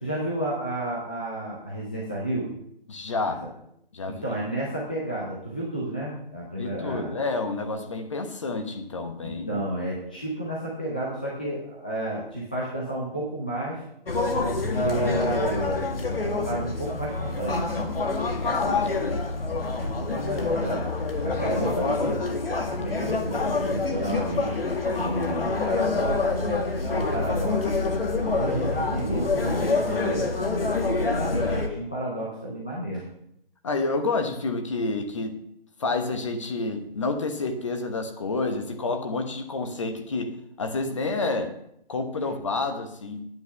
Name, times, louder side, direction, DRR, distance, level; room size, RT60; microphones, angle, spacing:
voice 1, 0.0-2.5 4.1-7.1 9.2-13.8 14.5-15.9 16.2-17.7 19.7-20.9 21.2-22.2 22.7-24.6 24.9-26.6 26.9-27.7 28.2-30.7 31.1-33.0, right 1 dB, 10° left, -5 dB, 0.6 m, -31 dB
voice 2, 2.9-3.4 3.9-4.4 6.6-9.6 18.4-19.2 33.6-35.4 35.8-41.5 41.9-43.3, left 3 dB, 30° left, 6 dB, 1.1 m, -29 dB
sound 1, 14.1-31.7, left 3 dB, 70° left, 2.1 m, -26 dB
9.3 x 7.9 x 6.7 m, 0.73 s
figure-of-eight pair, 165°, 30 cm